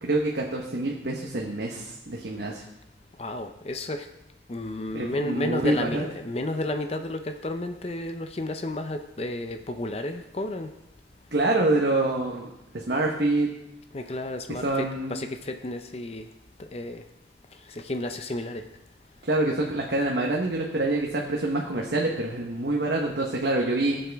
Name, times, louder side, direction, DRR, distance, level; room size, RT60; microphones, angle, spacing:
voice 1, 0.0-2.7 4.9-6.0 11.3-13.5 14.5-15.2 19.2-24.0, right 2 dB, 70° right, -1 dB, 1.1 m, -26 dB
voice 2, 3.2-4.1 4.5-10.7 13.9-16.3 16.6-17.0 17.7-18.6, left 1 dB, 35° left, 7 dB, 0.6 m, -32 dB
17.0 x 7.6 x 3.5 m, 0.89 s
head